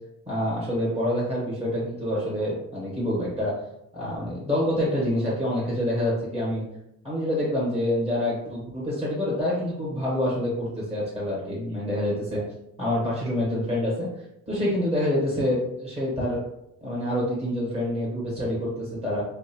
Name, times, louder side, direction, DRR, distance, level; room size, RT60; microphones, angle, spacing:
voice 1, 0.3-3.5 3.9-6.6 7.0-12.4 12.8-14.1 14.5-16.4 16.8-19.2, left 1 dB, 20° right, -6 dB, 1.1 m, -27 dB
2.6 x 2.2 x 2.8 m, 0.80 s
cardioid pair, 90°, 30 cm